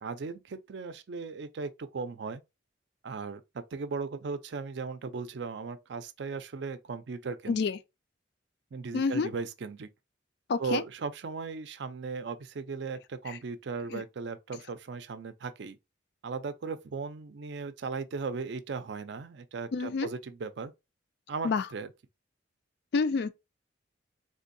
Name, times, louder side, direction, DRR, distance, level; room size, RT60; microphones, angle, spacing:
voice 1, 0.0-2.4 3.0-7.6 8.7-9.9 10.6-15.8 16.2-20.7 21.3-21.9, right 4 dB, 60° right, 0.4 m, -37 dB
voice 2, 7.5-7.8 8.9-9.3 10.5-10.8 13.9-14.0 19.7-20.1 21.4-21.7 22.9-23.3, left 4 dB, 55° left, 0.3 m, -28 dB
3.7 x 2.6 x 2.6 m
head